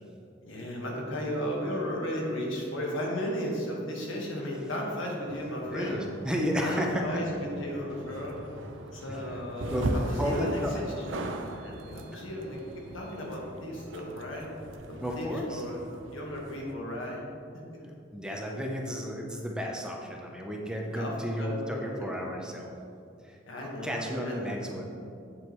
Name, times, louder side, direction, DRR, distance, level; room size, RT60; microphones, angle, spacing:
voice 1, 0.4-6.0 6.6-8.4 8.9-10.9 11.2-14.5 14.9-15.8 16.1-17.2 17.5-17.6 20.9-22.1 23.5-24.6, equal, 80° left, -2 dB, 1.6 m, -35 dB
sound 1, 5.2-16.7, right 1 dB, 70° right, 0.6 m, -39 dB
voice 2, 5.7-7.2 9.1-9.4 9.7-9.8 10.2-10.8 12.1-12.2 15.0-15.6 18.1-22.7 23.2-25.0, equal, 5° right, 0 dB, 0.6 m, -33 dB
7.8 x 7.5 x 3.1 m, 2.5 s
head